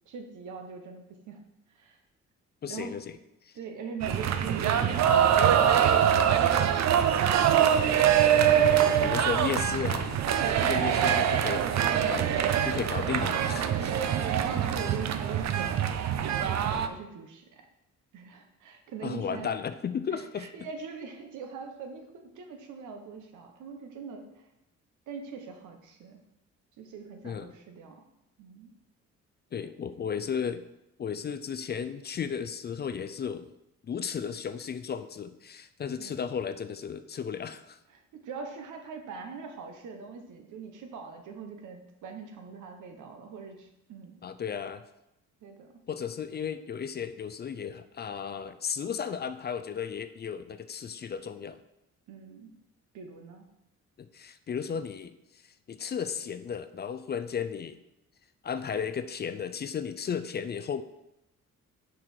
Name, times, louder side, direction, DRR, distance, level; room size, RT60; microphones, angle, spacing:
voice 1, 0.1-1.4 1.7-2.0 2.7-3.0 3.5-7.0 14.2-17.6 18.1-19.5 20.1-24.4 25.1-26.2 26.8-28.1 28.4-28.7 29.5-29.7 36.0-36.2 37.9-44.2 45.4-45.8 52.1-52.5 52.9-53.5, right 5 dB, 80° right, 5 dB, 1.0 m, -42 dB
voice 2, 2.6-3.2 3.5-3.6 8.3-10.3 10.6-11.7 12.1-12.3 12.6-14.0 19.0-20.5 27.2-27.5 29.5-30.6 31.0-33.5 33.9-37.8 44.2-44.8 45.9-51.6 54.0-55.1 55.7-57.8 58.4-60.8, left 7 dB, 35° left, 11 dB, 0.4 m, -34 dB
sound 1, 4.0-16.9, right 9 dB, 60° right, 0.6 m, -24 dB
6.2 x 4.8 x 4.4 m, 0.87 s
cardioid pair, 90°, 30 cm